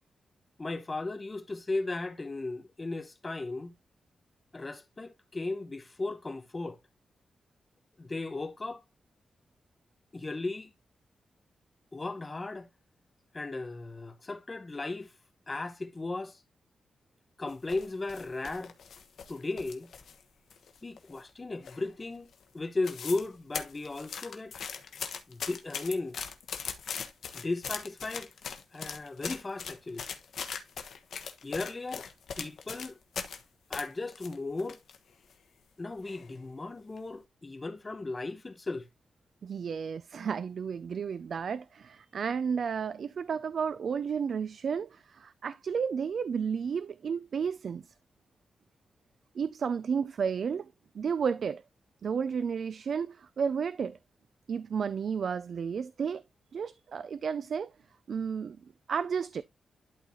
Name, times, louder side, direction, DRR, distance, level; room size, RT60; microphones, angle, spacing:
voice 1, 0.6-3.7 4.5-6.8 8.0-8.8 10.1-10.7 11.9-12.7 13.3-15.1 15.5-16.4 17.4-18.7 19.3-19.9 20.8-22.3 22.5-24.6 25.3-26.2 27.3-28.3 28.7-30.1 31.4-32.1 32.4-33.0 33.7-34.8 35.8-38.9, left 3 dB, 25° left, 0.9 m, -36 dB
sound 1, 17.5-20.2 20.5-21.3 21.6-22.0 22.3-22.4 22.6-23.3 23.5-33.4 33.7-35.0 35.3-35.4 36.0-36.4 36.8-37.0, left 7 dB, 75° left, 1.2 m, -40 dB
voice 2, 39.4-47.8 49.3-51.6 52.0-54.0 54.5-56.2 56.5-57.7 58.1-58.6 58.9-59.4, right 6 dB, 60° right, 0.4 m, -32 dB
12.0 x 4.0 x 3.0 m
wide cardioid pair, 120°, 0 cm